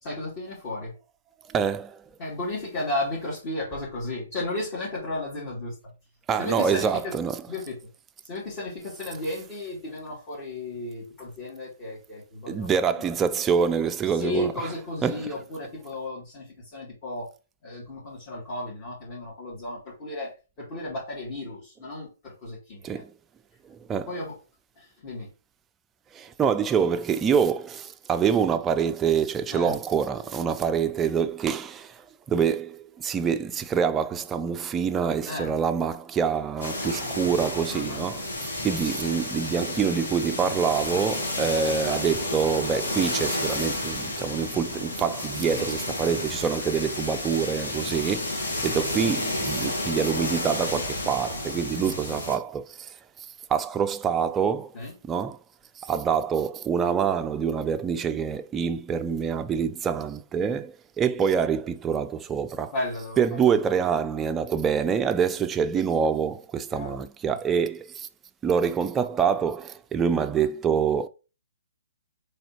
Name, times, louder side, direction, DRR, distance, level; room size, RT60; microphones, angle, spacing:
voice 1, 0.0-0.9 2.2-5.7 6.4-7.1 7.5-7.8 8.3-12.7 14.2-17.3 17.6-23.0 24.1-24.3 24.8-25.3 29.5-29.7 35.3-35.5 37.7-38.0 45.6-45.7 51.8-51.9 54.7-54.9 62.7-63.2 66.7-66.9, left 1 dB, 35° left, 2.3 m, -34 dB
voice 2, 1.5-2.0 6.3-7.4 12.5-14.5 15.0-15.3 22.8-23.1 23.6-24.1 26.1-38.2 38.6-53.0 53.5-54.8 55.0-55.4 55.8-62.7 63.2-68.1 68.4-71.1, right 7 dB, 15° right, 0.4 m, -26 dB
sound 1, 36.6-52.4, left 1 dB, 85° left, 1.7 m, -31 dB
4.2 x 3.4 x 2.8 m
hypercardioid pair, 140°, 0 cm